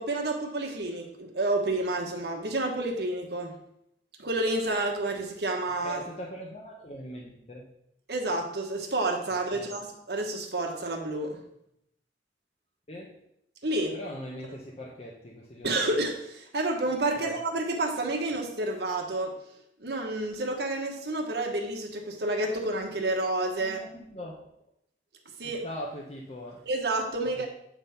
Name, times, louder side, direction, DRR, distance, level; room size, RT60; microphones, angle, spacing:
voice 1, 0.0-3.6 4.2-6.0 8.1-11.4 13.6-13.9 15.6-19.4 19.8-23.8 25.4-25.6 26.7-27.5, right 2 dB, 65° right, 2 dB, 1.2 m, -29 dB
voice 2, 5.8-7.7 9.5-9.8 12.9-13.2 13.9-15.7 17.2-17.4 23.6-24.5 25.4-26.7, equal, 35° left, -3 dB, 0.8 m, -41 dB
8.1 x 3.6 x 5.6 m, 0.76 s
head